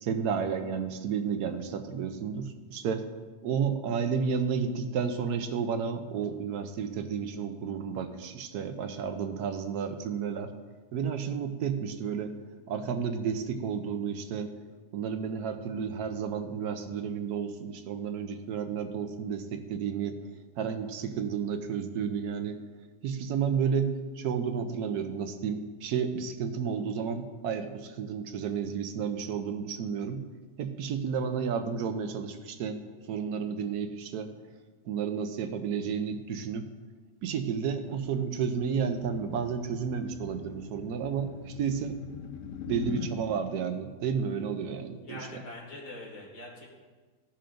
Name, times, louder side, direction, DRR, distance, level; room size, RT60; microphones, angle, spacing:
voice 1, 0.0-3.0 3.4-10.5 10.9-12.3 12.7-14.5 14.9-20.2 20.6-22.6 23.0-30.2 30.6-32.8 33.1-34.3 34.9-36.7 37.2-42.0 42.7-45.4, right 6 dB, 75° right, 7 dB, 1.1 m, -31 dB
sound 1, 37.9-43.2, left 8 dB, 70° left, 0.8 m, -42 dB
voice 2, 45.0-46.7, left 2 dB, 85° left, -4 dB, 2.5 m, -43 dB
14.0 x 5.7 x 2.6 m, 1.4 s
omnidirectional pair, 1.7 m